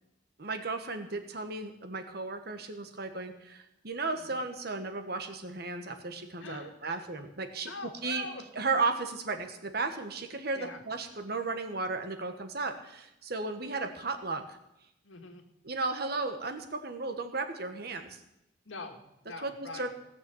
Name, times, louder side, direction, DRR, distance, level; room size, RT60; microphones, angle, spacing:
voice 1, 0.4-7.7 8.0-8.3 8.5-14.4 15.6-18.2 19.4-20.0, right 3 dB, 55° right, 6 dB, 1.4 m, -34 dB
voice 2, 6.4-7.0 7.7-8.4 10.5-10.8 15.0-15.4 18.7-19.9, left 3 dB, 85° left, 5 dB, 1.9 m, -43 dB
17.5 x 6.9 x 7.1 m, 0.86 s
head